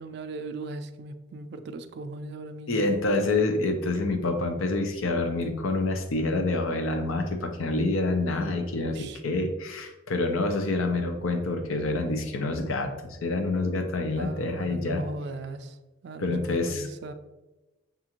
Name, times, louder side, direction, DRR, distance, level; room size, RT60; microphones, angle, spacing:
voice 1, 0.0-2.8 8.8-9.2 14.2-17.1, right 2 dB, 55° right, 9 dB, 0.3 m, -38 dB
voice 2, 2.7-15.0 16.2-16.9, left 2 dB, 85° left, 6 dB, 0.6 m, -27 dB
6.7 x 2.4 x 2.9 m, 1.1 s
head